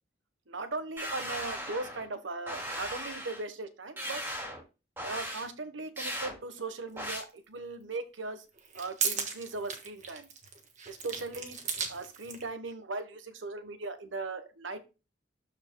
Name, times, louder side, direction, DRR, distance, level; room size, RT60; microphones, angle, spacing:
voice 1, 0.5-4.2 5.0-8.4 8.7-10.3 10.9-11.6 11.9-14.8, right 3 dB, 85° right, 9 dB, 1.2 m, -38 dB
sound 1, 1.0-2.1 2.5-3.4 4.0-4.6 5.0-5.5 6.0-6.3 7.0-7.2, equal, 10° right, 2.7 m, -37 dB
sound 2, 7.1-7.2 8.5-12.5, right 6 dB, 40° right, 1.4 m, -36 dB
12.5 x 4.8 x 2.2 m, 0.29 s
head